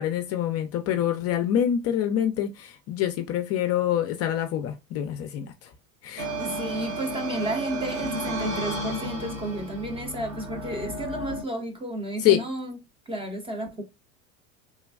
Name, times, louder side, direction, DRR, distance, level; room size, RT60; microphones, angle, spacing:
voice 1, 0.0-5.5 6.0-6.3 12.2-12.4, left 10 dB, 40° left, 0.4 m, -25 dB
sound 1, 6.2-11.4, right 1 dB, 85° right, 1.3 m, -33 dB
voice 2, 6.4-12.8 13.1-13.8, right 1 dB, 15° right, 0.5 m, -32 dB
3.3 x 2.2 x 2.3 m
hypercardioid pair, 100°, 41 cm